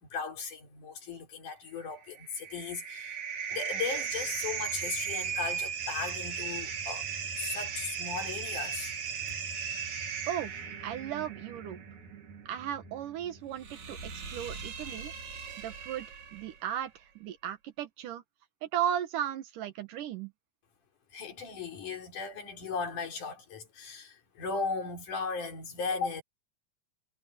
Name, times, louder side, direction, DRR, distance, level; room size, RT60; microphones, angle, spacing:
voice 1, 0.1-3.2 3.5-7.1 7.4-8.9 21.1-26.2, left 5 dB, 70° left, 5.1 m, -37 dB
sound 1, 2.0-16.6, right 7 dB, 65° right, 4.0 m, -37 dB
voice 2, 10.8-11.8 12.5-15.1 15.6-16.1 16.3-18.2 18.6-20.3, right 10 dB, 80° right, 2.8 m, -35 dB
omnidirectional pair, 3.7 m